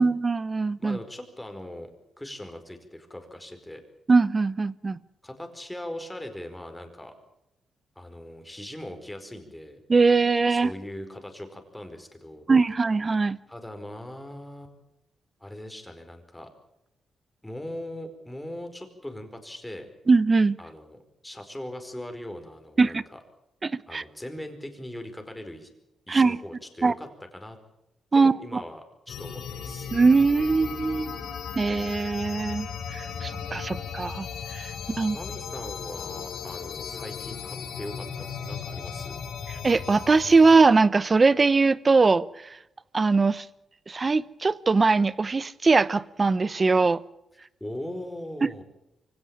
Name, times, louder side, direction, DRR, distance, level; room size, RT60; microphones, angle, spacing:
voice 1, 0.0-1.0 4.1-5.0 9.9-10.7 12.5-13.4 20.1-20.6 22.8-23.0 23.6-24.0 26.1-26.4 26.8-26.9 28.1-28.6 29.9-31.2 31.6-35.2 39.5-42.6 42.9-43.5 43.9-47.0, right 4 dB, 35° right, 18 dB, 0.8 m, -21 dB
voice 2, 0.8-1.9 2.2-3.8 5.2-7.1 7.9-9.8 10.5-12.5 13.5-14.7 15.4-16.5 17.4-19.9 20.6-23.2 23.9-25.7 26.1-27.6 28.1-29.9 33.5-33.8 35.1-39.2 47.6-48.6, left 1 dB, 10° left, 6 dB, 4.8 m, -40 dB
sound 1, 29.1-40.7, left 6 dB, 85° left, 4.1 m, -36 dB
24.5 x 17.0 x 8.8 m, 0.88 s
cardioid pair, 85°, 0 cm